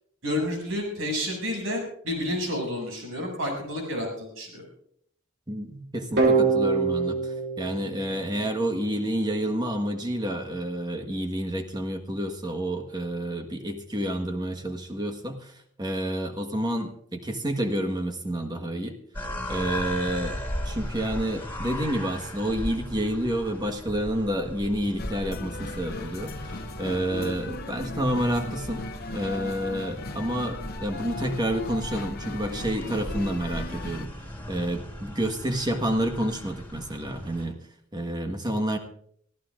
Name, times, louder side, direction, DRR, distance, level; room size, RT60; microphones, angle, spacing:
voice 1, 0.2-4.6, left 1 dB, 70° right, 1 dB, 6.9 m, -30 dB
voice 2, 5.5-15.5 15.8-18.9 19.5-20.4 20.6-34.1 34.5-37.6 37.9-38.8, right 1 dB, 20° right, 5 dB, 1.5 m, -29 dB
sound 1, 6.2-9.0, right 4 dB, 55° right, 2.5 m, -25 dB
sound 2, 19.1-37.5, equal, 10° left, 4.0 m, -37 dB
sound 3, 25.0-34.1, left 2 dB, 50° left, 1.0 m, -37 dB
24.5 x 15.0 x 2.5 m, 0.65 s
head